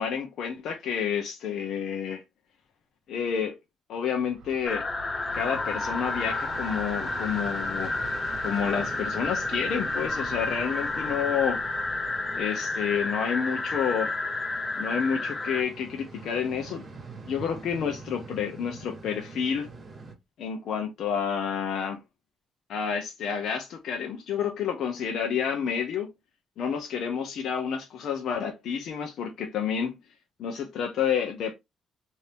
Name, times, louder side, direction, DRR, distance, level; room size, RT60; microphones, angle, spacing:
voice 1, 0.0-2.2 3.1-3.5 3.9-4.9 5.3-8.0 8.4-11.6 12.3-14.1 14.8-16.8 17.3-19.7 20.4-22.0 22.7-26.1 26.6-30.0 30.4-31.5, left 7 dB, 70° left, 0.7 m, -29 dB
Train, 4.1-13.3, right 4 dB, 70° right, 0.7 m, -45 dB
sound 1, 4.6-15.6, left 3 dB, 35° left, 0.9 m, -31 dB
sound 2, 5.3-20.1, right 3 dB, 30° right, 1.3 m, -45 dB
2.7 x 2.7 x 3.4 m
cardioid pair, 90°, 0 cm